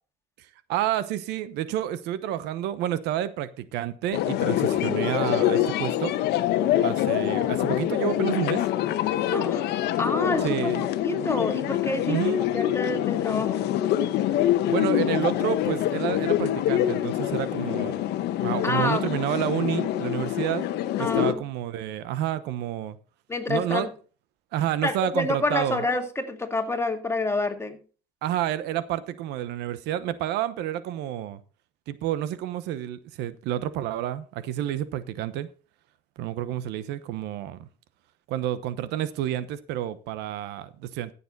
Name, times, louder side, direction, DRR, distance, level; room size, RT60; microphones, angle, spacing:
voice 1, 0.4-6.1 6.8-8.7 10.4-10.8 12.1-12.4 14.7-18.1 18.4-20.6 21.0-23.0 23.5-23.9 24.5-25.8 28.2-31.4 31.9-35.5 36.2-37.7 38.3-41.1, right 12 dB, 90° right, 0.9 m, -29 dB
sound 1, 4.1-21.3, left 12 dB, 85° left, 1.0 m, -25 dB
voice 2, 9.2-9.7 10.0-10.7 11.0-12.2 12.5-13.8 18.6-19.1 21.0-21.4 23.3-23.9 24.8-27.8, left 2 dB, 15° left, 2.1 m, -28 dB
15.0 x 7.0 x 4.0 m
cardioid pair, 110°, 17 cm